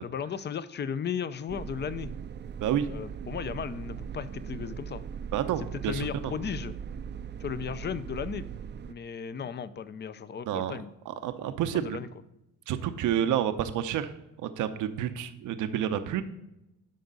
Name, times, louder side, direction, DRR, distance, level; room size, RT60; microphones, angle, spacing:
voice 1, 0.0-2.1 2.8-5.0 5.6-6.8 7.4-8.5 8.9-10.9 11.7-12.1, left 7 dB, 35° left, 15 dB, 0.6 m, -35 dB
sound 1, 1.5-8.9, right 7 dB, 35° right, 0.5 m, -39 dB
voice 2, 5.3-6.3 9.4-9.5 10.5-10.7 11.1-12.0 12.7-14.1 14.4-16.2, right 10 dB, 85° right, 10 dB, 0.8 m, -29 dB
11.5 x 5.3 x 3.9 m, 0.89 s
cardioid pair, 90°, 30 cm